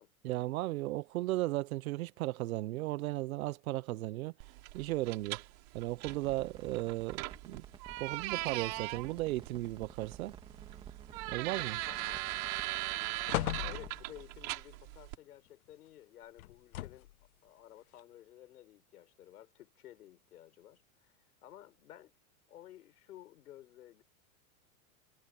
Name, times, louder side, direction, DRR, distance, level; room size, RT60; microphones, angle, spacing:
voice 1, 0.2-4.3 4.7-5.4 5.7-7.6 8.0-10.3 11.3-11.8, right 17 dB, 70° right, 0.6 m, -35 dB
sound 1, 4.4-15.2, right 19 dB, 25° right, 0.7 m, -40 dB
sound 2, 6.0-14.6, right 6 dB, 10° right, 1.8 m, -54 dB
sound 3, 11.7-12.3 12.7-12.8 13.3-14.3 16.4-17.2 18.0-18.1, left 16 dB, 70° left, 1.0 m, -38 dB
voice 2, 11.9-12.2 12.9-17.1 17.4-21.1 21.4-22.2 22.5-24.0, left 13 dB, 85° left, 5.2 m, -54 dB
supercardioid pair, 170°, 44 cm